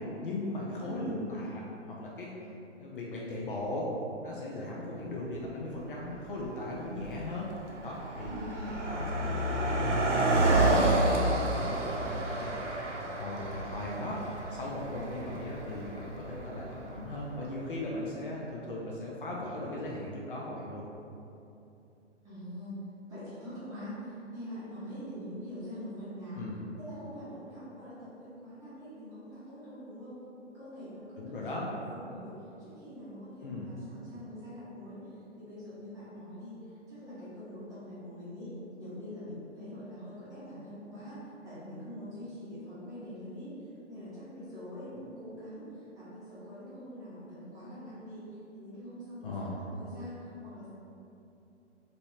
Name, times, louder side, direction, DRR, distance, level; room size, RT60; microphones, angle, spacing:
voice 1, 0.2-1.6 2.0-2.4 2.8-3.9 4.2-7.5 7.8-8.4 8.9-14.2 14.5-20.8 26.4-26.6 31.2-31.7 33.4-33.7 49.2-49.5, left 1 dB, 45° left, -4 dB, 0.5 m, -38 dB
voice 2, 0.8-1.3 8.2-8.9 22.2-22.8 23.1-26.4 26.7-30.2 30.5-43.5 43.9-48.2 48.5-50.7, equal, 10° right, -13 dB, 0.8 m, -44 dB
Car passing by, 5.3-5.4 6.2-6.5 6.7-17.2, right 2 dB, 75° right, 0.6 m, -30 dB
2.9 x 2.6 x 3.1 m, 2.8 s
figure-of-eight pair, 130°, 36 cm